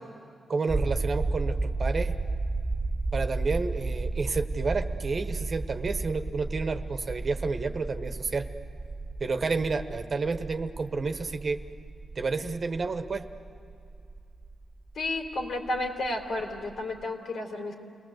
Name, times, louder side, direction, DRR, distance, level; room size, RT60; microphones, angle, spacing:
voice 1, 0.5-2.2 3.1-8.5 9.2-11.6 12.1-13.3, right 4 dB, 45° right, 8 dB, 1.3 m, -30 dB
sound 1, 0.7-16.7 17.0-17.1, right 3 dB, 25° right, 0.6 m, -33 dB
voice 2, 15.0-17.7, left 2 dB, 70° left, 2 dB, 3.5 m, -32 dB
29.0 x 20.5 x 8.0 m, 2.5 s
cardioid pair, 90°, 0 cm